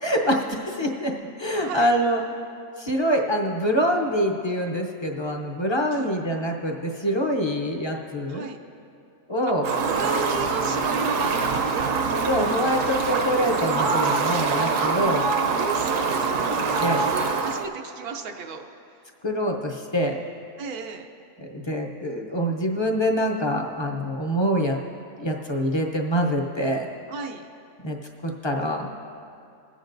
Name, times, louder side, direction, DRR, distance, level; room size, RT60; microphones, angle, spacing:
voice 1, 0.0-1.1 1.4-2.2 2.8-8.4 9.3-9.7 12.3-15.2 16.8-17.0 19.2-20.2 21.4-24.8 25.2-26.9 27.8-28.0 28.2-28.9, equal, 30° left, 1 dB, 0.5 m, -25 dB
voice 2, 5.9-6.2 8.3-8.6 9.8-12.3 13.8-14.3 14.8-18.6 20.6-21.1 27.1-27.4, right 5 dB, 85° right, 4 dB, 1.2 m, -33 dB
Fowl, 9.6-17.6, right 4 dB, 65° right, 1.0 m, -24 dB
22.5 x 8.1 x 2.6 m, 2.5 s
omnidirectional pair, 1.5 m